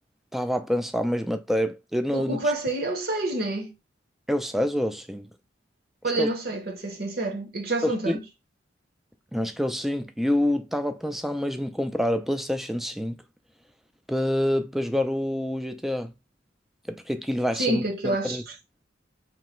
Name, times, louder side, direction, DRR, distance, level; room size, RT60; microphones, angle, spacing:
voice 1, 0.3-2.4 4.3-5.3 6.2-6.3 7.8-8.2 9.3-13.2 14.1-16.1 16.9-18.4, equal, ahead, 0.3 m, -27 dB
voice 2, 2.1-3.7 6.0-8.2 17.6-18.5, right 2 dB, 50° right, 0.8 m, -28 dB
3.0 x 2.8 x 4.3 m
head